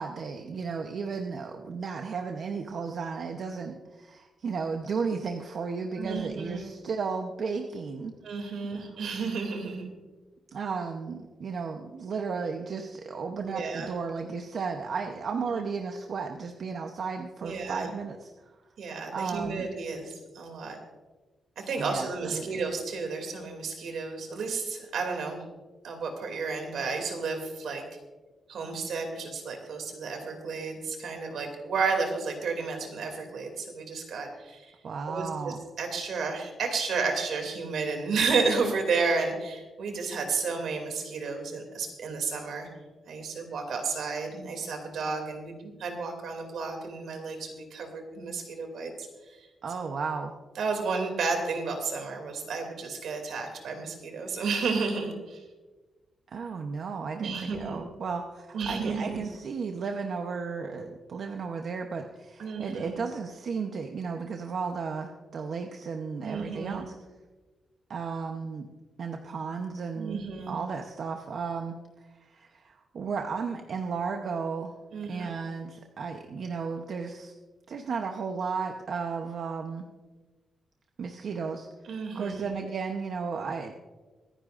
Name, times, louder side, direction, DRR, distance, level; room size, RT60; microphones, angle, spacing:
voice 1, 0.0-8.1 8.7-8.9 10.5-18.5 19.1-19.7 21.8-22.6 34.8-35.6 49.6-50.4 56.3-66.9 67.9-68.7 69.0-74.7 75.1-77.3 77.7-79.8 81.0-81.7 82.1-83.7, right 5 dB, 55° right, 4 dB, 0.9 m, -34 dB
voice 2, 6.0-6.6 8.2-9.9 13.4-13.9 17.4-17.9 18.8-20.8 21.6-25.4 25.8-27.8 28.5-34.7 35.1-42.7 43.1-49.1 49.4-49.5 49.8-50.0 50.6-55.4 57.2-57.8 58.5-59.3 62.4-63.0 66.2-66.8 69.9-70.6 74.9-75.3 81.8-82.5, right 4 dB, 80° right, 4 dB, 2.7 m, -32 dB
24.5 x 10.0 x 2.5 m, 1.3 s
wide cardioid pair, 155°, 0 cm